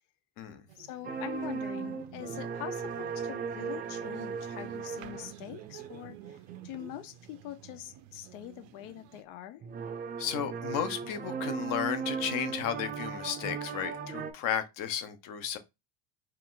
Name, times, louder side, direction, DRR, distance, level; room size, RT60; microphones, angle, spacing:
sound 1, 0.7-9.2, right 13 dB, 90° right, 0.7 m, -52 dB
voice 1, 0.8-9.6, left 13 dB, 80° left, 0.8 m, -44 dB
sound 2, 1.0-6.9 9.6-14.3, right 6 dB, 25° right, 0.4 m, -37 dB
voice 2, 10.2-15.6, left 9 dB, 55° left, 0.9 m, -34 dB
4.5 x 2.5 x 3.8 m
cardioid pair, 165°, 39 cm